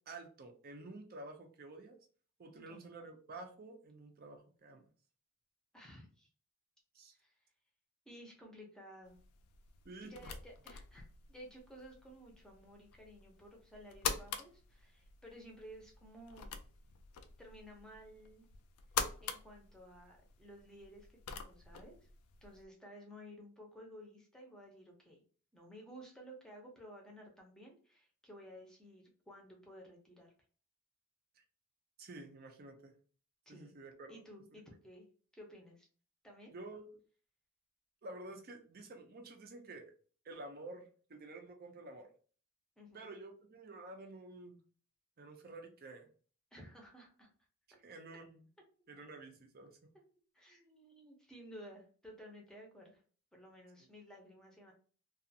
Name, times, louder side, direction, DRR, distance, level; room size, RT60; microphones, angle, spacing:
voice 1, 0.1-2.0 2.4-4.8 6.9-7.2 9.8-10.1 31.4-31.5 32.0-32.9 33.5-34.2 36.5-37.0 38.0-39.9 40.2-42.1 42.9-44.6 45.2-46.1 47.8-48.5 48.9-49.8, right 2 dB, 45° right, 4 dB, 0.5 m, -50 dB
voice 2, 5.7-6.3 7.1-7.4 8.1-9.2 10.0-16.5 17.4-18.5 19.2-22.0 22.4-25.2 25.5-30.3 33.5-33.7 34.1-35.0 35.3-35.9 36.2-36.5 42.8-43.0 46.5-47.3 50.3-53.0 53.3-54.7, equal, 5° left, 0 dB, 0.7 m, -55 dB
sound 1, 9.0-22.7, left 6 dB, 90° left, 0.4 m, -45 dB
2.4 x 2.4 x 2.7 m, 0.41 s
head